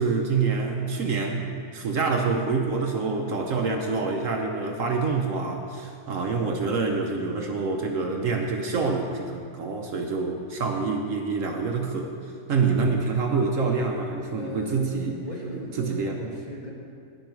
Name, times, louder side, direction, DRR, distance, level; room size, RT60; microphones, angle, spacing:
voice 1, 0.0-12.1 12.5-15.2 15.8-16.2, right 4 dB, 65° right, 2 dB, 1.1 m, -26 dB
voice 2, 14.4-16.7, equal, 25° left, -4 dB, 1.8 m, -37 dB
10.5 x 9.9 x 4.5 m, 2.4 s
omnidirectional pair, 1.6 m